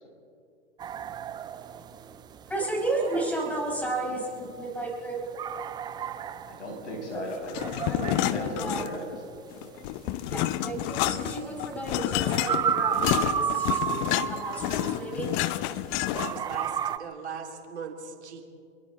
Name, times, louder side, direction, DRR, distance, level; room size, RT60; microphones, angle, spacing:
sound 1, 0.8-15.7 16.1-17.0, right 8 dB, 15° right, 0.5 m, -32 dB
voice 1, 2.5-5.2 7.9-8.0 8.3-8.8 10.3-13.0 13.2-14.0 14.3-15.3, right 2 dB, 5° left, -1 dB, 5.8 m, -32 dB
voice 2, 6.5-7.6 7.9-9.2, left 1 dB, 85° left, 0 dB, 7.2 m, -36 dB
sound 2, 7.5-9.2 9.5-16.5, left 15 dB, 35° left, 0.7 m, -29 dB
voice 3, 16.2-18.4, right 6 dB, 70° right, 3 dB, 3.1 m, -39 dB
28.5 x 22.5 x 4.1 m, 2.5 s
hypercardioid pair, 110°, 34 cm